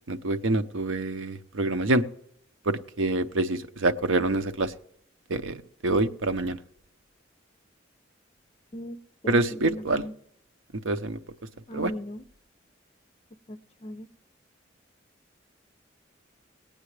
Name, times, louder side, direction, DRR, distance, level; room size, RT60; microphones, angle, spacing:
voice 1, 0.1-2.0 2.6-4.7 5.3-5.6 5.8-6.6 9.3-10.1 10.8-11.2 11.7-11.9, right 2 dB, 90° right, 11 dB, 0.7 m, -26 dB
voice 2, 9.2-10.1 11.7-12.2 13.5-14.1, equal, 30° left, 10 dB, 0.5 m, -38 dB
19.5 x 8.8 x 3.2 m, 0.69 s
head